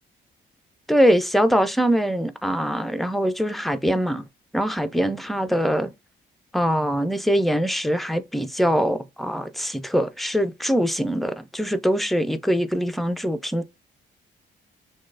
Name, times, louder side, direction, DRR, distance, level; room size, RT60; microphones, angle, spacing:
voice 1, 0.9-4.2 4.5-5.9 6.5-13.6, equal, ahead, 0.5 m, -23 dB
6.1 x 2.3 x 2.4 m
cardioid pair, 90°, 20 cm